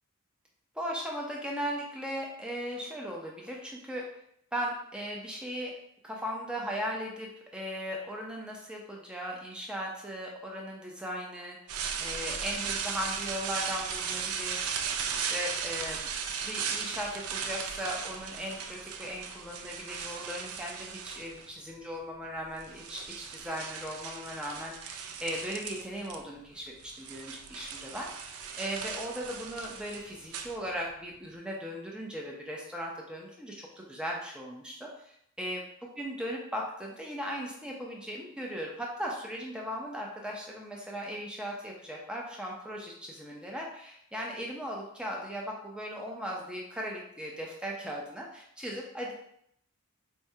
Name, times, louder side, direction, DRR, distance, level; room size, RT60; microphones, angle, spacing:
voice 1, 0.7-4.1 4.5-5.8 6.0-16.1 16.4-35.6 36.0-49.1, equal, 5° right, -2 dB, 0.5 m, -38 dB
sound 1, 11.7-21.6 22.4-26.2 26.5-31.0, right 6 dB, 75° right, 0.4 m, -37 dB
4.5 x 2.2 x 2.7 m, 0.70 s
head